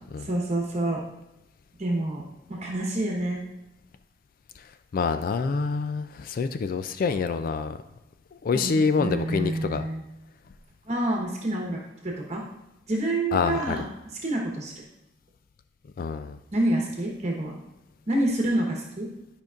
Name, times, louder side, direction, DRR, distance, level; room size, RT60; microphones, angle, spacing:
voice 1, 0.2-1.0 1.8-2.2 2.5-3.4 8.5-10.0 10.9-12.4 12.9-13.9 14.2-14.7 16.5-17.5 18.1-19.1, right 1 dB, 35° right, -2 dB, 1.1 m, -27 dB
voice 2, 4.9-7.8 8.4-9.8 13.3-13.8 16.0-16.4, left 5 dB, 45° left, 10 dB, 0.3 m, -26 dB
12.0 x 5.2 x 2.4 m, 0.96 s
head